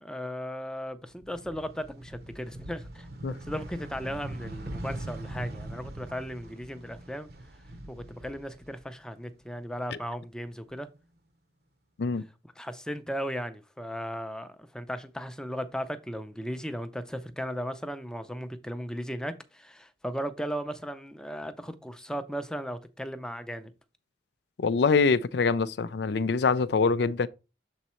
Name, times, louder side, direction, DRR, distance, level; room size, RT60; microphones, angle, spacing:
voice 1, 0.0-3.1 3.4-7.3 7.9-10.9 12.6-23.7, equal, 5° left, 0.6 m, -36 dB
sound 1, 1.1-9.2 9.6-10.7, right 1 dB, 55° right, 0.8 m, -42 dB
voice 2, 24.6-27.3, left 4 dB, 65° left, 0.4 m, -24 dB
7.2 x 4.0 x 4.3 m
head